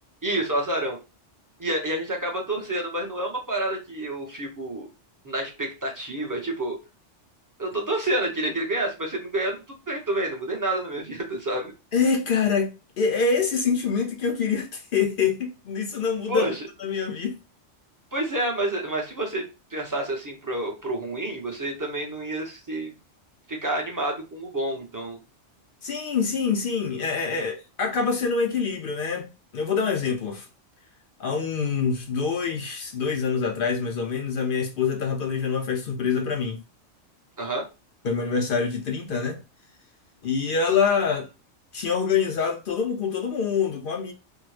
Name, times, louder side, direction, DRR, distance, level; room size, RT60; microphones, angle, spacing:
voice 1, 0.2-1.0 1.6-4.9 5.2-6.8 7.6-9.6 9.9-11.7 16.3-16.6 18.1-19.5 19.7-22.9 23.5-25.2 37.4-37.7, right 1 dB, 20° right, 0.6 m, -28 dB
voice 2, 11.9-16.5 16.8-17.4 25.8-30.5 31.2-36.6 38.0-39.4 40.2-41.3 41.7-44.1, left 5 dB, 60° left, 0.6 m, -25 dB
3.5 x 2.1 x 3.1 m
omnidirectional pair, 1.2 m